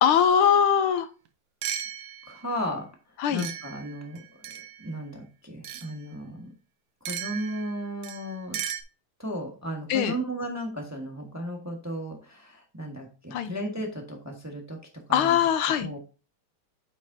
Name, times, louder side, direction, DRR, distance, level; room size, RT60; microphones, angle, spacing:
voice 1, 0.0-1.1 3.2-3.4 9.9-10.1 13.3-13.5 15.1-16.0, left 8 dB, 80° left, 11 dB, 1.6 m, -21 dB
sound 1, 1.0-1.1 1.6-2.5 3.4-4.9 5.6-5.9 7.1-8.8, right 10 dB, 75° right, 1.6 m, -36 dB
voice 2, 2.3-2.9 3.3-6.5 7.1-8.6 9.2-14.8 15.1-15.4 15.8-16.0, equal, 10° right, 2 dB, 1.0 m, -35 dB
8.6 x 6.3 x 2.7 m, 0.34 s
omnidirectional pair, 2.4 m